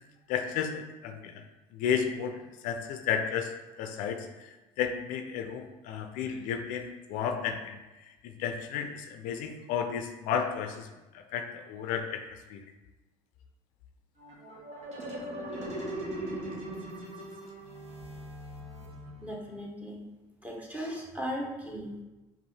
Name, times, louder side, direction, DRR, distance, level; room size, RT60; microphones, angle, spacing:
voice 1, 0.3-1.4 1.7-4.3 4.8-7.8 8.2-10.9 11.3-12.2 12.5-12.6, left 7 dB, 70° left, 6 dB, 0.4 m, -32 dB
sound 1, 14.2-19.6, right 1 dB, 50° right, 1.3 m, -39 dB
voice 2, 19.2-20.0 20.4-22.0, equal, 10° right, -2 dB, 1.1 m, -37 dB
5.2 x 2.5 x 3.2 m, 1.1 s
supercardioid pair, 80°, 15 cm